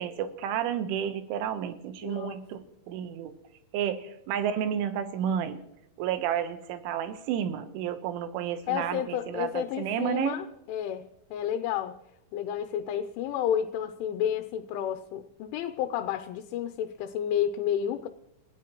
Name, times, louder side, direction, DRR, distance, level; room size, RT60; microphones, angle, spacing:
voice 1, 0.0-3.3 3.7-5.6 6.0-10.4, right 9 dB, 85° right, 9 dB, 3.5 m, -31 dB
voice 2, 2.0-2.4 8.7-12.0 12.3-18.1, left 10 dB, 85° left, 6 dB, 3.2 m, -31 dB
29.5 x 16.0 x 3.0 m, 0.83 s
omnidirectional pair, 5.5 m